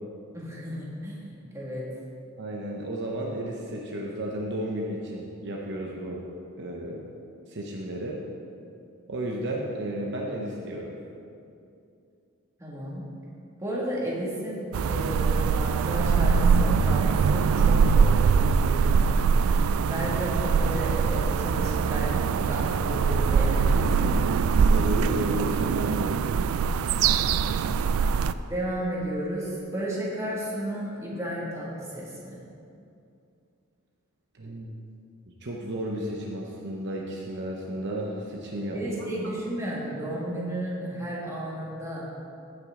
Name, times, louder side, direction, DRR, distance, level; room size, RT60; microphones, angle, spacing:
voice 1, 0.3-1.8 12.6-13.0 13.6-19.0 19.9-24.3 28.5-32.4 38.7-42.1, right 1 dB, 15° right, -6 dB, 2.1 m, -33 dB
voice 2, 2.4-6.2 6.6-7.1 7.5-8.2 9.1-11.0 24.7-26.2 34.3-34.7 35.4-38.9, right 1 dB, 55° right, -1 dB, 0.9 m, -33 dB
sound 1, 14.7-28.3, right 5 dB, 70° right, 0.3 m, -23 dB
15.0 x 6.3 x 3.8 m, 2.6 s
head